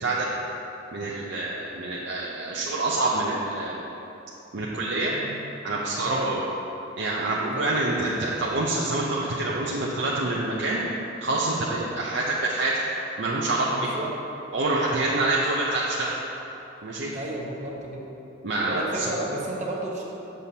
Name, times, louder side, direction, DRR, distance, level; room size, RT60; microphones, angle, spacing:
voice 1, 0.9-3.8 4.5-5.1 5.6-6.4 7.0-10.8 11.2-12.8 13.2-13.9 14.5-16.1 16.8-17.1 18.4-19.1, right 2 dB, 65° right, -5 dB, 0.6 m, -26 dB
voice 2, 7.5-8.1 13.7-14.1 14.9-15.3 17.1-18.1 18.7-20.0, right 1 dB, 40° right, -2 dB, 1.0 m, -33 dB
7.7 x 6.8 x 2.8 m, 3.0 s
head